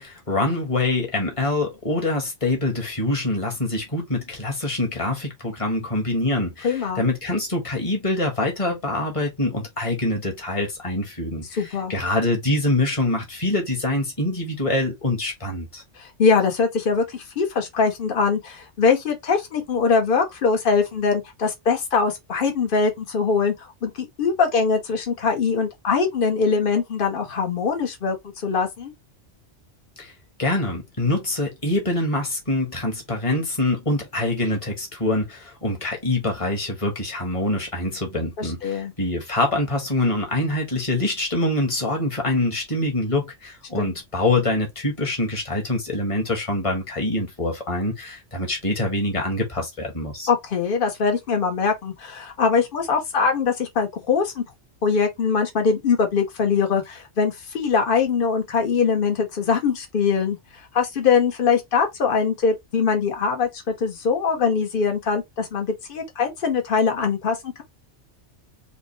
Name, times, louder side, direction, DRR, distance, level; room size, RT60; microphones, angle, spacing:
voice 1, 0.0-15.8 30.0-30.1 30.4-50.3, left 2 dB, 30° left, 1.5 m, -25 dB
voice 2, 6.6-7.0 11.6-11.9 16.0-28.9 38.4-38.9 43.8-43.9 50.3-54.4 54.8-67.6, left 5 dB, 50° left, 1.2 m, -22 dB
5.0 x 2.2 x 3.2 m
omnidirectional pair, 1.2 m